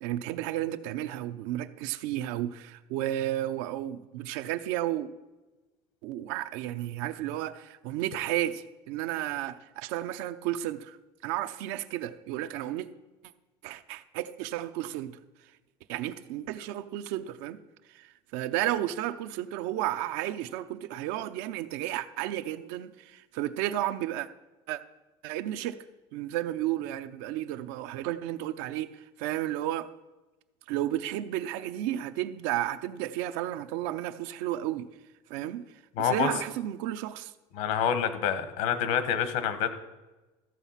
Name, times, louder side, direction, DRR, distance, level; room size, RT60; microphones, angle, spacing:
voice 1, 0.0-5.1 6.0-11.0 11.2-12.9 13.6-15.2 15.9-17.6 17.9-24.3 24.7-24.8 25.2-25.8 26.1-29.9 30.7-34.9 35.3-35.6 36.0-37.3, right 13 dB, 80° right, 0.6 m, -32 dB
voice 2, 36.0-36.3 37.5-39.7, left 8 dB, 75° left, 1.2 m, -27 dB
14.0 x 7.1 x 5.7 m
cardioid pair, 145°, 12 cm